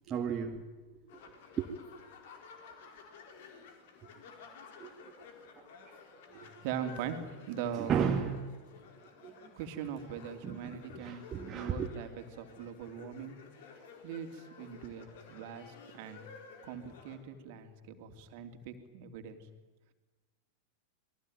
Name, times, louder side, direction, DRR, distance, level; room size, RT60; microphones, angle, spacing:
voice 1, 0.1-0.7 1.1-1.2 1.6-1.7 4.8-4.9 5.9-6.0 7.8-8.5 9.2-9.5 10.4-11.9, right 7 dB, 25° right, 1.8 m, -34 dB
sound 1, 1.1-17.2, left 5 dB, 55° left, 4.5 m, -53 dB
voice 2, 6.3-7.9 9.6-12.1 12.3-13.5 14.0-16.2 16.6-19.5, right 8 dB, 45° right, 2.9 m, -41 dB
27.0 x 22.0 x 9.1 m
figure-of-eight pair, 90°, 0 cm